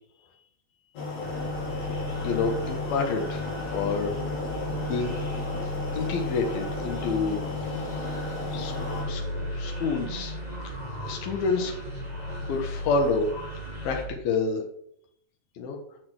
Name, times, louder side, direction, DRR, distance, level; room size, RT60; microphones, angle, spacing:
sound 1, 1.0-9.0, left 3 dB, 55° left, 4.0 m, -34 dB
sound 2, 1.2-14.1, equal, 10° left, 3.4 m, -35 dB
voice 1, 2.2-3.4 3.7-4.1 4.9-5.2 5.9-7.4 8.5-8.7 9.1-9.2 9.5-10.4 11.1-11.7 12.5-13.3 13.8-14.6 15.6-15.8, left 4 dB, 85° left, 2 dB, 3.4 m, -28 dB
8.6 x 6.8 x 8.0 m, 0.70 s
omnidirectional pair, 4.1 m